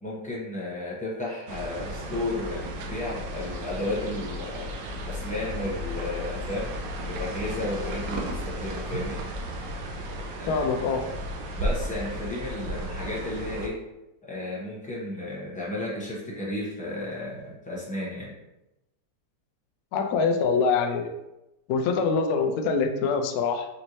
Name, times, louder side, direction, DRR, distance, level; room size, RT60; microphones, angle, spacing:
voice 1, 0.0-6.7 7.0-9.2 10.4-10.9 11.5-13.8 14.2-18.3, left 1 dB, 10° left, -6 dB, 0.5 m, -33 dB
sound 1, 1.5-13.7, equal, 80° right, 1.3 m, -34 dB
voice 2, 10.5-11.0 19.9-21.1 21.7-23.7, left 5 dB, 75° left, 4 dB, 0.8 m, -24 dB
5.2 x 2.7 x 3.0 m, 0.95 s
omnidirectional pair, 2.1 m